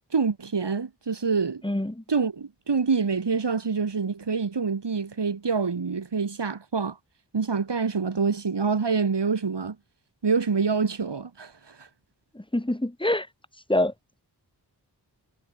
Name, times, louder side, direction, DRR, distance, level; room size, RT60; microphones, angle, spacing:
voice 1, 0.1-1.6 2.1-7.0 7.3-9.8 10.2-11.9, right 5 dB, 85° right, 5.2 m, -26 dB
voice 2, 1.6-2.0 12.4-13.3 13.7-13.9, left 1 dB, 10° left, 3.7 m, -25 dB
wide cardioid pair, 75°, 41 cm